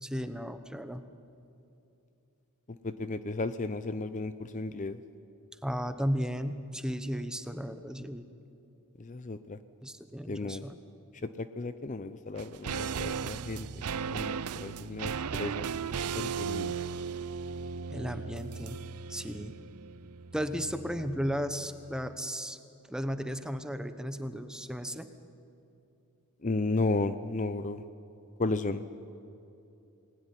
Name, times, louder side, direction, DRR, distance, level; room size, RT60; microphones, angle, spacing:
voice 1, 0.0-1.0 5.6-8.3 9.8-10.8 17.9-18.8 19.1-19.5 20.3-22.6 22.9-25.1, equal, 5° right, 9 dB, 1.1 m, -35 dB
voice 2, 2.7-5.0 9.0-9.6 10.3-10.7 11.2-13.7 14.1-15.6 16.1-16.7 26.4-27.8 28.4-28.8, left 2 dB, 35° left, 12 dB, 0.7 m, -34 dB
sound 1, 12.4-21.7 22.0-22.1, right 6 dB, 90° right, 0.6 m, -36 dB
28.5 x 20.5 x 9.9 m, 2.8 s
head